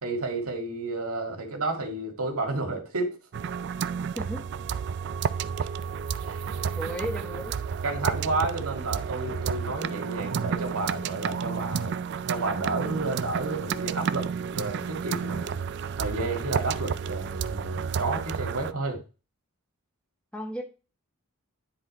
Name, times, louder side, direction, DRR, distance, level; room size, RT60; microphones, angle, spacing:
voice 1, 0.0-3.2 6.2-6.5 7.8-11.9 12.3-15.6 16.0-19.0, right 2 dB, 80° right, 2 dB, 1.9 m, -31 dB
sound 1, 3.3-18.7, right 6 dB, 50° right, 0.3 m, -31 dB
voice 2, 6.7-7.5 20.3-20.6, equal, 5° left, 3 dB, 1.1 m, -34 dB
10.0 x 4.0 x 4.1 m, 0.33 s
head